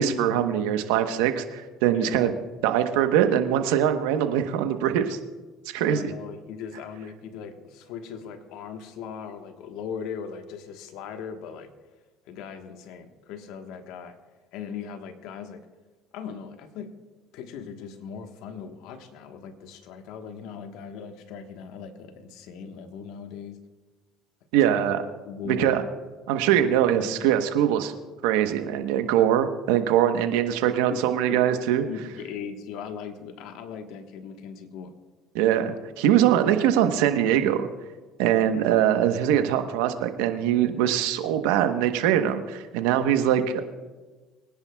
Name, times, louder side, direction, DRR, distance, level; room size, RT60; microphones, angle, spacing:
voice 1, 0.0-2.3 2.6-5.2 5.7-6.1 24.5-25.0 25.5-25.8 26.3-27.9 28.2-31.8 35.3-37.7 38.2-43.7, right 10 dB, 85° right, 8 dB, 1.0 m, -22 dB
voice 2, 5.8-11.7 12.3-14.2 14.5-15.7 16.1-17.0 17.3-23.6 24.7-24.8 25.2-25.8 26.5-27.3 30.9-31.4 31.8-34.9, left 7 dB, 75° left, 7 dB, 1.3 m, -39 dB
24.0 x 10.5 x 2.3 m, 1.3 s
supercardioid pair, 95°, 0 cm